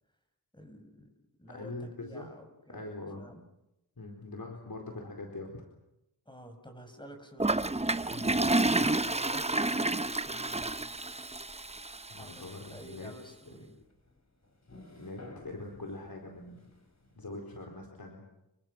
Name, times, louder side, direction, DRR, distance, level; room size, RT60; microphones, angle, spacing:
voice 1, 0.5-1.1 1.4-3.5 6.3-7.7 9.0-10.7 12.2-13.8, equal, 10° left, 5 dB, 7.0 m, -51 dB
voice 2, 1.5-2.3 2.7-3.3 4.0-5.6 8.1-8.4 12.1-13.1 15.0-16.7 17.2-18.2, left 2 dB, 70° left, 1 dB, 4.5 m, -43 dB
Toilet flush, 7.4-12.4, right 2 dB, 15° right, 0.9 m, -30 dB
sound 1, 13.4-17.6, left 1 dB, 45° left, 6.4 m, -54 dB
29.5 x 24.5 x 6.1 m, 0.87 s
wide cardioid pair, 50°, 37 cm